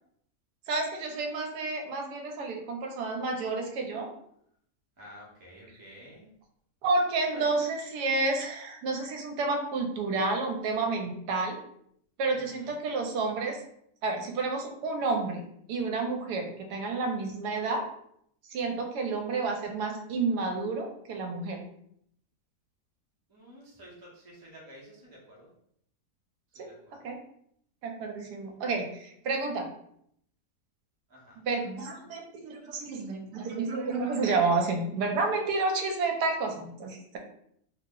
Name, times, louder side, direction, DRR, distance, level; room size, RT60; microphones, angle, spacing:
voice 1, 0.7-4.1 6.8-11.6 12.2-13.6 14.0-17.8 18.5-21.7 26.6-26.7 27.0-27.2 27.8-29.7 31.4-37.2, right 3 dB, 80° right, 3 dB, 1.1 m, -30 dB
voice 2, 5.0-6.2 7.3-7.6 12.3-12.8 23.3-25.5 26.5-27.1 31.1-31.4, equal, 25° right, -4 dB, 0.5 m, -50 dB
3.0 x 2.0 x 3.6 m, 0.71 s
omnidirectional pair, 1.8 m